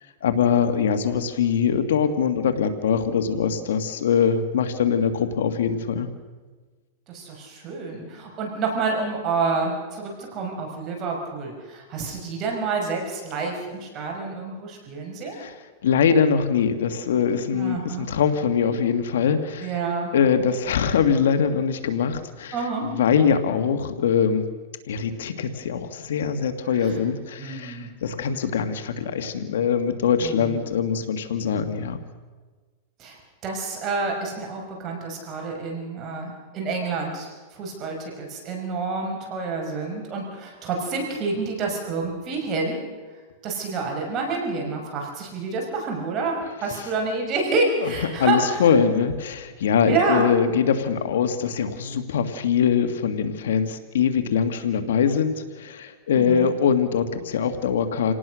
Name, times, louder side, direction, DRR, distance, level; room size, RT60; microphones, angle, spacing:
voice 1, 0.2-6.1 15.3-15.5 15.8-19.7 20.1-22.5 22.8-24.4 24.9-32.0 47.8-47.9 48.2-58.1, left 7 dB, 85° left, 9 dB, 1.9 m, -22 dB
voice 2, 7.1-15.4 17.5-18.1 19.6-20.1 22.5-23.0 26.7-27.0 27.4-27.9 30.2-30.6 33.0-42.8 43.4-48.7 49.9-50.2 56.1-56.5, right 4 dB, 35° right, 1 dB, 5.8 m, -28 dB
28.0 x 18.5 x 6.4 m, 1.4 s
supercardioid pair, 135°, 0 cm